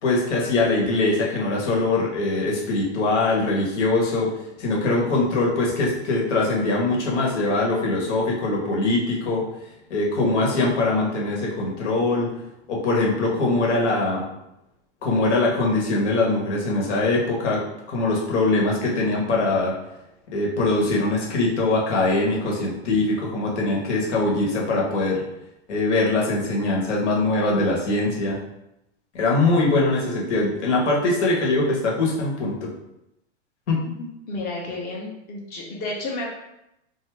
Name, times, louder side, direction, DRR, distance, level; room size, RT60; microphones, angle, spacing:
voice 1, 0.0-4.3 4.6-9.4 9.9-12.3 12.7-14.2 15.0-17.6 17.9-19.7 20.3-25.2 25.7-28.4 29.1-32.7 33.7-34.1, left 2 dB, 80° left, -2 dB, 1.1 m, -22 dB
voice 2, 34.3-36.3, left 2 dB, 25° left, -2 dB, 0.6 m, -31 dB
2.6 x 2.4 x 3.2 m, 0.86 s
supercardioid pair, 145°, 35 cm